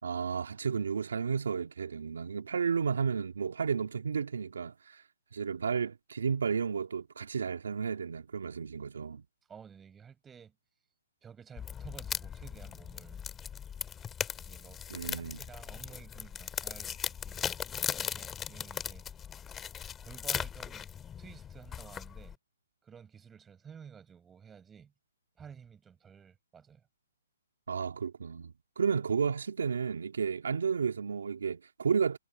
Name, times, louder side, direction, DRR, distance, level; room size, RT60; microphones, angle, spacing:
voice 1, 0.0-5.0 5.3-9.2 14.9-15.4 27.7-32.2, right 6 dB, 75° right, 2.2 m, -32 dB
voice 2, 9.5-10.5 11.2-13.3 14.4-14.8 15.2-17.4 18.1-19.1 20.0-20.9 21.2-22.4 22.8-24.9 25.4-26.8, right 7 dB, 10° right, 6.0 m, -52 dB
sound 1, 11.6-22.4, left 8 dB, 15° left, 2.2 m, -39 dB
hypercardioid pair, 145°, 0 cm